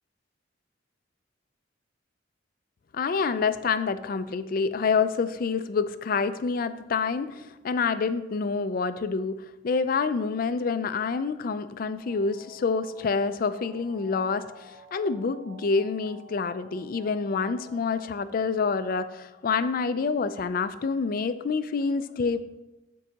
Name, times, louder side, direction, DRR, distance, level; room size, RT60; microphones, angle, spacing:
voice 1, 2.9-22.4, left 5 dB, 50° left, 12 dB, 0.4 m, -27 dB
sound 1, 12.0-17.9, right 1 dB, 30° right, 2.1 m, -51 dB
12.0 x 4.6 x 2.9 m, 1.0 s
head